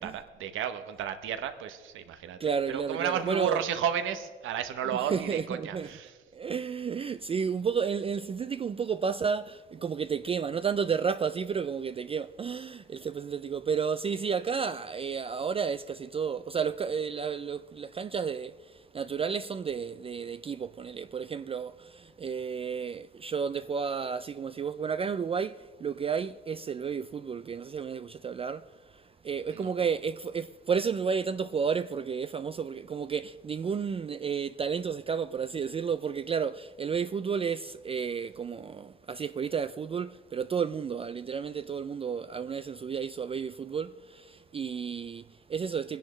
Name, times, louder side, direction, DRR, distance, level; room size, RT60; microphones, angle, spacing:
voice 1, 0.0-2.4 2.7-6.1 29.5-29.7, right 9 dB, 80° right, 1.0 m, -33 dB
voice 2, 2.4-3.6 4.9-5.9 6.3-46.0, right 6 dB, 30° right, 0.3 m, -32 dB
20.5 x 10.5 x 3.2 m
cardioid pair, 90°, 20 cm